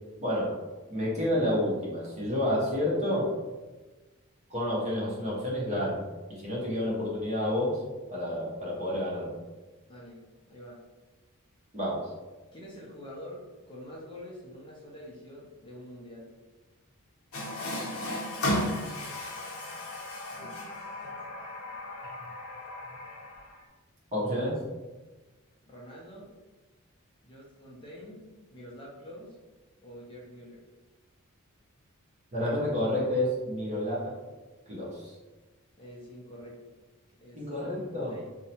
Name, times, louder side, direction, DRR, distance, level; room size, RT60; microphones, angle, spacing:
voice 1, 0.2-0.5 0.9-3.3 4.5-6.0 6.3-7.8 8.1-9.3 11.7-12.1 24.1-24.6 32.3-34.2 34.7-35.2 37.3-38.2, left 1 dB, 30° right, -6 dB, 0.8 m, -29 dB
voice 2, 9.9-10.8 12.5-16.3 25.6-26.3 27.2-28.2 28.5-29.4 29.8-30.6 35.8-36.6 37.2-38.3, equal, 25° left, -4 dB, 0.4 m, -46 dB
Water tap faucet, 17.3-23.6, left 1 dB, 80° left, 0.6 m, -35 dB
2.7 x 2.1 x 2.8 m, 1.2 s
head